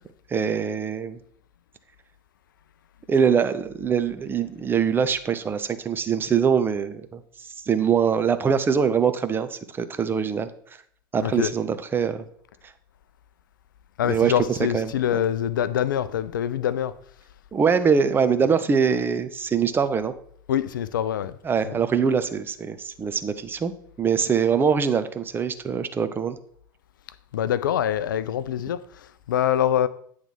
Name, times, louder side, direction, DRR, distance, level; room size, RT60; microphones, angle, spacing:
voice 1, 0.3-1.2 3.1-7.2 7.7-10.5 11.1-12.2 12.6-12.7 14.0-14.3 14.7-15.2 17.5-20.1 21.4-23.7 24.0-26.4, right 6 dB, 20° right, 0.5 m, -23 dB
voice 2, 11.2-11.5 14.0-17.0 20.5-21.4 21.6-21.8 27.3-29.9, left 10 dB, 65° left, 0.4 m, -25 dB
9.0 x 3.2 x 5.6 m
figure-of-eight pair, 80°, 12 cm